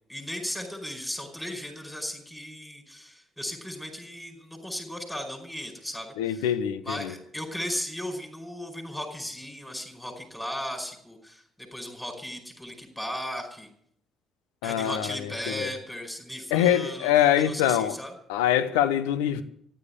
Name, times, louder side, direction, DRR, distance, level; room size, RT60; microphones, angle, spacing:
voice 1, 0.1-6.5 6.8-11.4 11.7-13.7 14.6-18.1, equal, 5° left, 4.9 m, -36 dB
voice 2, 6.2-7.1 14.6-15.7 16.5-18.0 18.3-19.4, left 11 dB, 70° left, 0.9 m, -24 dB
15.0 x 10.5 x 8.2 m
figure-of-eight pair, 45°, 0 cm